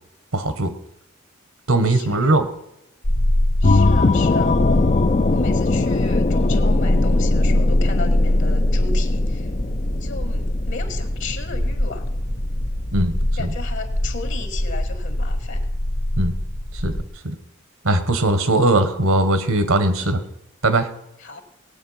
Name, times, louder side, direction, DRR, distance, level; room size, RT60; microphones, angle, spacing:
voice 1, 0.3-0.7 1.7-2.5 12.9-13.5 16.2-16.3 16.7-17.0 17.2-17.4 17.8-20.2 20.6-20.9, right 2 dB, 75° right, 10 dB, 1.3 m, -19 dB
voice 2, 1.9-2.4 3.6-4.6 5.3-9.5 10.0-12.1 13.4-15.7 21.2-21.4, left 4 dB, 60° left, 6 dB, 1.8 m, -35 dB
sound 1, 3.0-17.0, left 1 dB, 90° left, 1.9 m, -22 dB
sound 2, 3.6-11.9, left 3 dB, 30° left, 0.4 m, -22 dB
19.0 x 8.5 x 5.7 m, 0.89 s
head